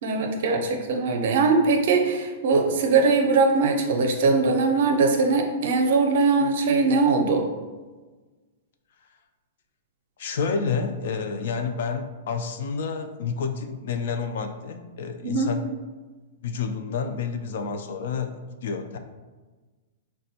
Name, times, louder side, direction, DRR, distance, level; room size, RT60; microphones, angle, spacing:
voice 1, 0.0-7.4 15.2-15.5, right 4 dB, 60° right, 4 dB, 0.5 m, -21 dB
voice 2, 10.2-15.6 16.4-19.0, left 5 dB, 65° left, 7 dB, 0.3 m, -29 dB
4.1 x 2.2 x 2.7 m, 1.3 s
hypercardioid pair, 155°, 0 cm